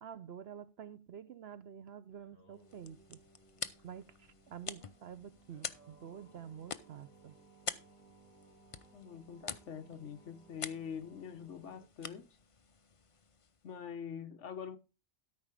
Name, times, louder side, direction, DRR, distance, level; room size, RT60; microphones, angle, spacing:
voice 1, 0.0-3.2 3.8-7.3, right 8 dB, 60° right, 0.8 m, -49 dB
Singing, 2.1-11.9, right 3 dB, 15° left, 5.8 m, -63 dB
sound 1, 2.5-13.8, left 6 dB, 45° left, 0.4 m, -48 dB
voice 2, 8.9-12.2 13.6-14.8, left 7 dB, 65° left, 1.3 m, -44 dB
13.0 x 5.5 x 4.8 m
omnidirectional pair, 1.3 m